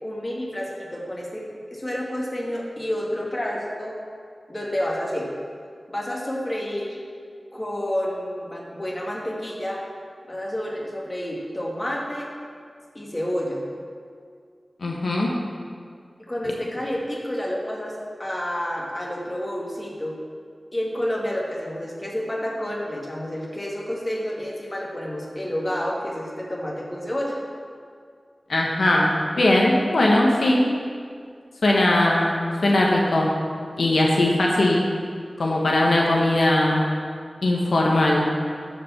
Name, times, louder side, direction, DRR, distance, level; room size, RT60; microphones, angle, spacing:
voice 1, 0.0-4.0 4.5-5.3 5.9-7.0 7.5-9.8 10.3-12.3 12.9-13.6 16.3-20.2 20.7-27.4, equal, 25° left, -3 dB, 2.3 m, -29 dB
voice 2, 14.8-15.3 16.5-16.6 28.5-29.1 29.4-30.6 31.6-32.4 32.6-33.3 33.8-34.8 35.4-36.8 37.4-38.2, left 1 dB, 80° left, -2 dB, 1.3 m, -19 dB
13.0 x 5.1 x 5.8 m, 2.1 s
wide cardioid pair, 55°, 0 cm